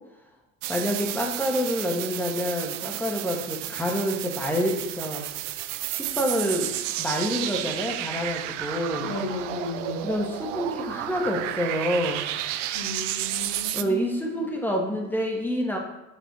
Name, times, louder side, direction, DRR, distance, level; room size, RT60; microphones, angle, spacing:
sound 1, 0.6-13.8, right 13 dB, 65° right, 0.5 m, -32 dB
voice 1, 0.7-5.3 5.9-6.7 7.0-9.1 10.0-12.3 13.7-15.8, equal, 5° left, 0 dB, 1.3 m, -27 dB
voice 2, 8.9-10.1 12.7-14.5, left 2 dB, 80° left, -7 dB, 2.0 m, -34 dB
6.0 x 4.1 x 4.4 m, 1.0 s
hypercardioid pair, 70°, 40 cm